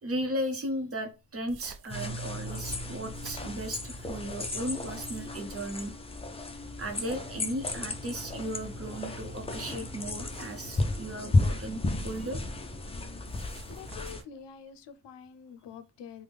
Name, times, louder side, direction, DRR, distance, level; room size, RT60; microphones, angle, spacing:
voice 1, 0.0-5.9 6.8-12.4, right 1 dB, 35° right, 0.7 m, -36 dB
sound 1, 1.5-4.1 4.7-5.5 6.7-7.3 8.2-8.4 10.2-11.0 11.9-12.4 13.2-14.4, right 5 dB, 70° right, 0.5 m, -51 dB
sound 2, 1.9-14.2, left 2 dB, 15° left, 0.3 m, -33 dB
voice 2, 13.7-16.2, left 7 dB, 85° left, 0.5 m, -47 dB
3.3 x 2.1 x 3.4 m
cardioid pair, 110°, 41 cm